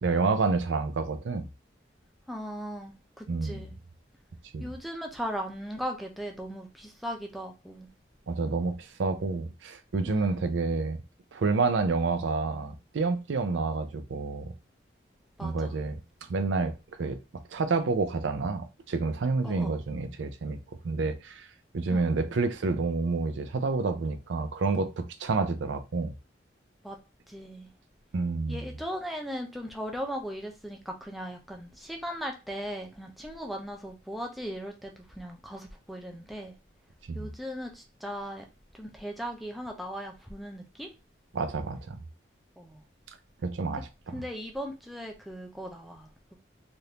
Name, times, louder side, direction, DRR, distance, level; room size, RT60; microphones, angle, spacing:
voice 1, 0.0-1.5 3.3-3.6 4.5-4.7 8.3-11.0 11.3-14.5 15.4-16.0 16.3-16.7 17.0-17.2 17.5-20.6 20.8-21.5 21.7-26.1 28.1-28.6 37.1-37.3 41.3-42.0 43.4-43.9, right 4 dB, 80° right, 0.5 m, -29 dB
voice 2, 2.3-3.7 4.6-7.9 10.1-10.4 15.4-15.7 19.4-19.8 21.9-22.0 26.8-27.0 27.3-27.7 28.5-36.5 37.1-38.5 38.7-40.9 42.6-42.8 43.7-43.8 44.1-46.4, equal, ahead, 0.4 m, -38 dB
3.3 x 2.5 x 2.8 m
head